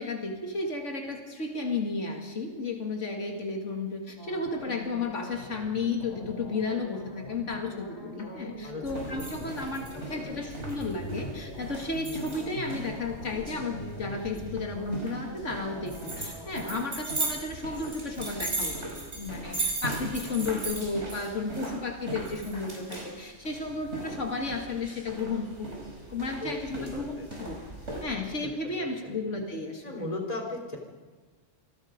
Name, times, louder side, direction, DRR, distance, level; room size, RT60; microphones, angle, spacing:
voice 1, 0.0-18.9 19.1-25.7 26.1-27.6 28.0-30.0, left 3 dB, 80° left, 2 dB, 2.5 m, -33 dB
sound 1, 4.2-16.6, left 1 dB, 65° left, 3.6 m, -43 dB
voice 2, 8.6-9.1 9.4-9.7 9.9-10.4 26.4-27.3 29.0-29.2 29.8-30.8, left 2 dB, 30° left, 2 dB, 3.8 m, -37 dB
sound 2, 8.8-28.0, right 2 dB, 70° right, 5.4 m, -38 dB
27.0 x 19.5 x 5.2 m, 1.4 s
omnidirectional pair, 1.2 m